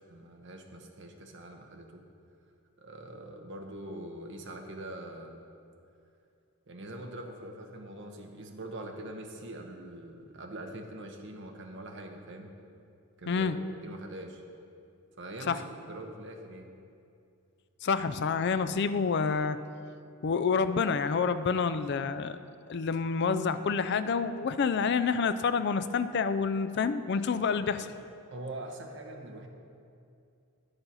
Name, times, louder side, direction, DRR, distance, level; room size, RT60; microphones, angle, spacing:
voice 1, 0.1-2.0 2.8-5.4 6.7-12.5 13.2-13.5 13.8-14.4 15.2-16.7 27.5-27.9 28.3-29.5, right 1 dB, 55° right, 3 dB, 1.0 m, -43 dB
voice 2, 17.8-19.6 20.2-22.4 22.7-27.9, left 5 dB, 50° left, 12 dB, 0.4 m, -28 dB
10.0 x 6.9 x 5.5 m, 2.5 s
head